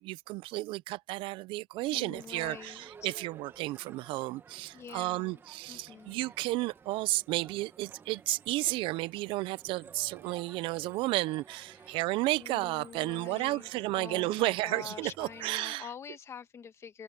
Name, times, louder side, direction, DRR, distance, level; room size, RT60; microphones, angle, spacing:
voice 1, 0.0-15.9, right 19 dB, 60° right, 0.4 m, -32 dB
voice 2, 1.9-3.1 4.7-5.4 5.7-6.2 11.7-12.0 12.4-17.0, left 7 dB, 30° left, 2.2 m, -46 dB
Crowd, 2.1-15.6, right 6 dB, 25° right, 1.3 m, -55 dB
cardioid pair, 155°, 10 cm